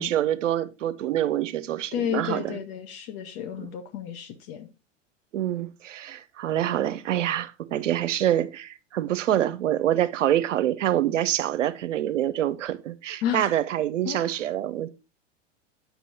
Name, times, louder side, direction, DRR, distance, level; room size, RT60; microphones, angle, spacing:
voice 1, 0.0-2.6 3.6-3.7 5.3-14.9, right 12 dB, 80° right, 0.7 m, -26 dB
voice 2, 1.9-4.7 13.2-13.5 14.0-14.4, left 9 dB, 50° left, 0.9 m, -32 dB
8.2 x 6.0 x 2.7 m
hypercardioid pair, 100°, 37 cm